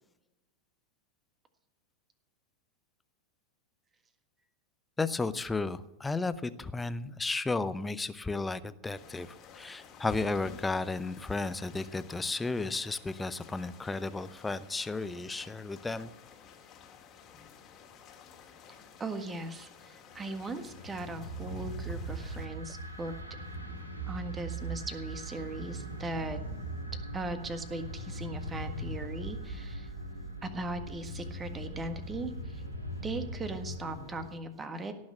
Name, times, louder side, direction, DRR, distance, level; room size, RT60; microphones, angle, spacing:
voice 1, 5.0-9.3 9.5-16.1, left 3 dB, 10° left, 14 dB, 0.7 m, -33 dB
sound 1, 8.9-22.5, left 7 dB, 30° left, 2.1 m, -53 dB
voice 2, 19.0-23.1 24.1-26.4 27.1-29.9 30.4-32.6 33.0-34.9, right 2 dB, 15° right, 9 dB, 1.6 m, -38 dB
sound 2, 20.1-34.3, right 1 dB, 85° right, 2.7 m, -40 dB
17.5 x 6.4 x 8.5 m, 0.96 s
figure-of-eight pair, 90°, 0 cm